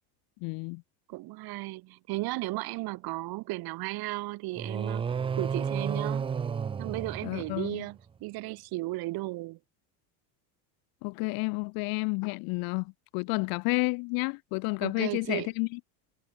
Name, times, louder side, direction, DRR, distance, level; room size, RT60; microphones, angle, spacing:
voice 1, 0.4-0.8 7.2-7.8 11.0-15.8, left 30 dB, 55° left, 0.5 m, -31 dB
voice 2, 1.1-6.3 6.8-9.6 14.8-15.5, right 20 dB, 55° right, 3.5 m, -35 dB
sound 1, 4.6-7.9, right 6 dB, 15° right, 0.4 m, -32 dB
cardioid pair, 140°, 43 cm